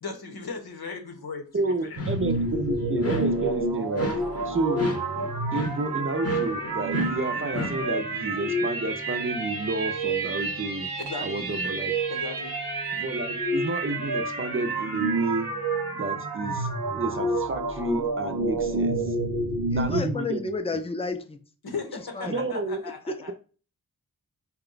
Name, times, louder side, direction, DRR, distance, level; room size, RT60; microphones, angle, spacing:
voice 1, 0.0-2.0 4.2-4.3 11.0-11.5 12.1-12.5 21.6-23.3, left 4 dB, 80° left, 0.9 m, -37 dB
voice 2, 1.5-4.9 5.5-10.9 11.2-11.9 12.9-15.5 15.9-19.2 19.7-20.5 22.3-22.8, right 2 dB, 35° right, 0.5 m, -30 dB
sound 1, 1.8-2.5 3.0-3.6 4.0-7.9, left 2 dB, 40° left, 0.8 m, -34 dB
sound 2, 2.0-20.1, right 2 dB, 80° right, 0.8 m, -29 dB
voice 3, 19.7-21.4 22.1-22.4 22.8-23.1, left 3 dB, 15° left, 0.5 m, -31 dB
4.1 x 2.2 x 3.8 m
wide cardioid pair, 55°, 37 cm